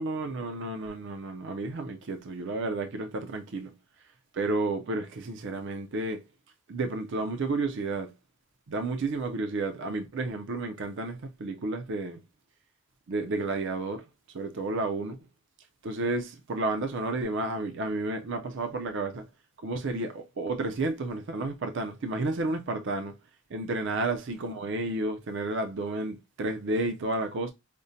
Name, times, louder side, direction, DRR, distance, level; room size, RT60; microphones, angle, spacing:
voice 1, 0.0-3.7 4.3-6.2 6.7-8.1 8.7-12.2 13.1-14.1 14.3-15.2 15.8-19.3 19.6-23.1 23.5-27.5, right 2 dB, 55° right, 0.5 m, -31 dB
5.1 x 2.1 x 2.6 m
head